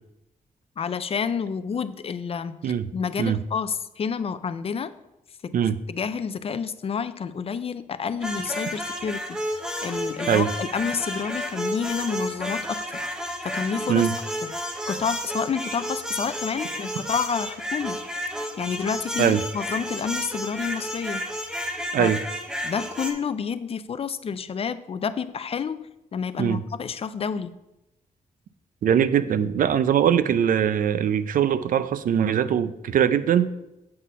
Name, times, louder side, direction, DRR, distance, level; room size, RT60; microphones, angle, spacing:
voice 1, 0.8-4.9 5.4-5.5 5.9-9.4 9.8-13.0 13.4-14.1 14.4-14.5 14.9-18.0 18.6-21.3 22.0-22.1 22.6-27.5, left 6 dB, 40° left, 13 dB, 0.4 m, -29 dB
sound 1, 8.2-23.1, equal, 5° right, 0.8 m, -31 dB
voice 2, 28.8-33.5, right 9 dB, 70° right, 14 dB, 0.4 m, -21 dB
7.6 x 4.1 x 5.4 m, 0.91 s
wide cardioid pair, 120°, 15 cm